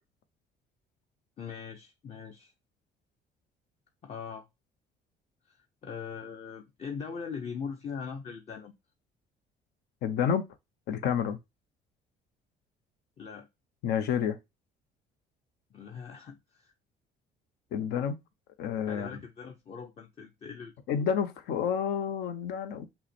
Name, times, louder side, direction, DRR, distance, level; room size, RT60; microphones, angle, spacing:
voice 1, 1.4-2.5 4.0-4.5 5.5-8.7 13.2-13.5 15.7-16.7 18.9-21.1, left 6 dB, 35° left, 0.7 m, -41 dB
voice 2, 10.0-10.5 10.9-11.4 13.8-14.4 17.7-18.2 18.6-19.1 20.9-22.9, left 8 dB, 75° left, 0.8 m, -29 dB
5.6 x 2.2 x 4.2 m
cardioid pair, 110°, 17 cm